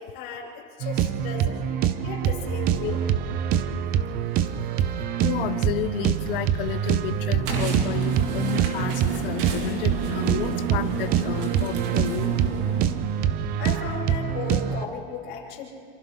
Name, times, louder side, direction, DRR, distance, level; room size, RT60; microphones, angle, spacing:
voice 1, 0.0-1.6 2.0-3.1 13.6-15.7, left 6 dB, 35° left, -7 dB, 5.6 m, -35 dB
sound 1, 0.8-14.8, right 9 dB, 30° right, 0.7 m, -25 dB
voice 2, 5.2-8.9 9.2-12.3, left 13 dB, 65° left, 10 dB, 1.1 m, -31 dB
sound 2, 7.4-13.2, right 5 dB, 60° right, 3.2 m, -31 dB
27.5 x 24.5 x 4.0 m, 2.2 s
supercardioid pair, 155°, 30 cm